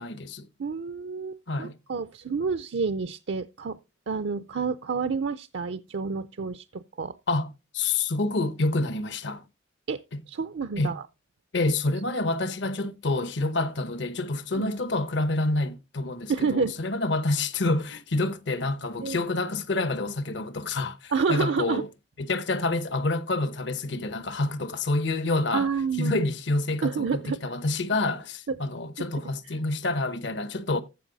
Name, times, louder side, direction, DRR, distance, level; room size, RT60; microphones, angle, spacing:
voice 1, 0.0-0.5 1.5-1.8 7.3-9.4 10.1-10.2 10.8-11.0 11.5-21.9 22.2-25.7 26.0-30.8, left 2 dB, 65° left, 1.0 m, -28 dB
voice 2, 0.6-3.8 4.1-7.2 9.9-10.0 10.3-11.0 14.6-14.7 16.3-16.8 19.0-19.2 21.1-21.8 25.5-26.3 26.8-27.4 28.5-28.6, right 5 dB, 65° right, 0.5 m, -29 dB
14.5 x 5.4 x 4.0 m
head